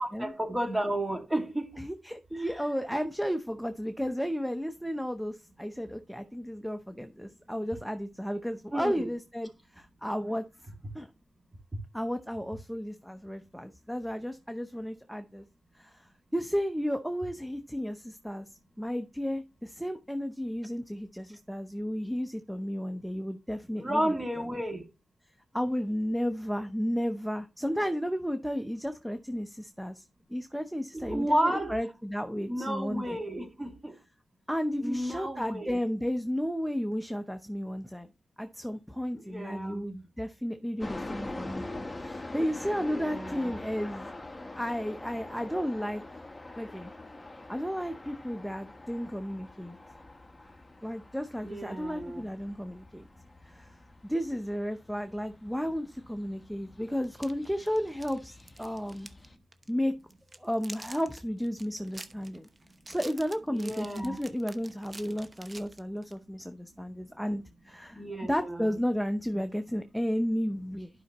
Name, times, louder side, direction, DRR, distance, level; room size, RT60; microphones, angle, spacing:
voice 1, 0.0-1.7 2.4-2.6 8.7-9.1 23.8-24.8 30.9-31.8 32.4-33.9 34.8-35.8 39.2-40.0 42.8-43.5 51.4-52.2 63.5-64.2 67.9-68.8, right 1 dB, 15° right, 2.2 m, -32 dB
voice 2, 1.8-10.4 10.9-11.1 11.9-15.4 15.7-18.5 18.8-24.1 25.5-33.2 34.5-38.1 38.4-41.6 42.0-44.1 44.5-46.0 46.6-46.9 47.5-49.8 50.8-53.1 53.4-53.8 54.0-59.1 59.7-59.9 60.4-62.5 62.9-70.9, equal, ahead, 0.7 m, -33 dB
sound 1, 40.8-59.4, left 2 dB, 20° left, 1.1 m, -44 dB
sound 2, 57.0-59.3 59.5-59.7 60.1-66.2, right 2 dB, 30° right, 0.9 m, -48 dB
11.5 x 5.5 x 3.0 m
cardioid pair, 70°, 0 cm